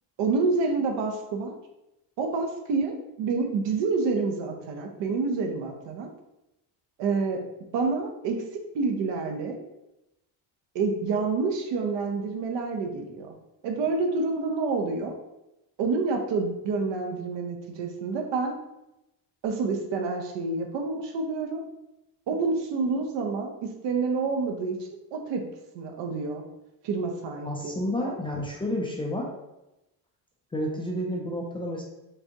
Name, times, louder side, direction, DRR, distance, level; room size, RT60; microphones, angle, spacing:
voice 1, 0.2-1.5 2.2-6.1 7.0-7.4 7.7-8.5 8.7-9.6 10.7-13.3 13.6-15.2 15.8-18.5 19.4-21.6 22.3-25.4 25.7-26.4 26.8-28.2, right 4 dB, 80° right, 3 dB, 0.9 m, -28 dB
voice 2, 27.4-29.3 30.5-31.8, left 1 dB, 15° left, -1 dB, 0.3 m, -30 dB
5.2 x 3.4 x 2.9 m, 0.92 s
cardioid pair, 165°, 43 cm